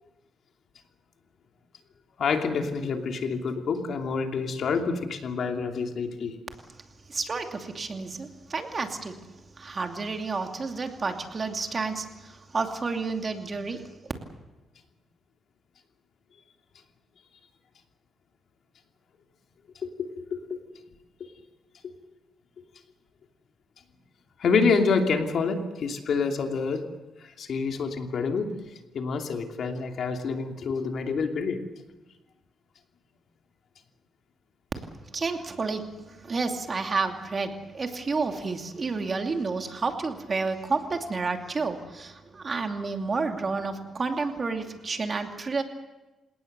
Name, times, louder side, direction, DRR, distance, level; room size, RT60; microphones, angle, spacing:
voice 1, 2.2-6.4 19.8-20.6 24.4-26.8 27.4-28.5 28.9-31.6, left 5 dB, 60° left, 3 dB, 2.8 m, -27 dB
voice 2, 7.1-9.2 9.6-12.0 12.5-13.8 35.1-35.9 36.3-45.6, right 4 dB, 35° right, 4 dB, 2.6 m, -30 dB
28.0 x 18.5 x 6.8 m, 1.1 s
cardioid pair, 115°, 0 cm